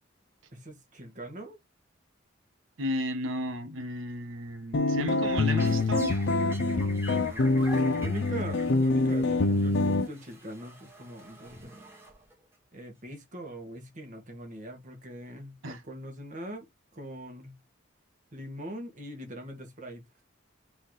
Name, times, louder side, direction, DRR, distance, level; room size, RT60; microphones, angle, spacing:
voice 1, 0.5-1.6 6.5-11.8 12.7-17.5 18.3-20.1, right 1 dB, 40° right, 1.6 m, -42 dB
voice 2, 2.8-6.1 15.6-15.8, equal, 75° right, 1.1 m, -33 dB
sound 1, 4.7-10.1, left 2 dB, 60° left, 0.5 m, -25 dB
sound 2, 5.2-12.5, right 1 dB, 10° right, 1.8 m, -47 dB
4.0 x 3.9 x 3.2 m
head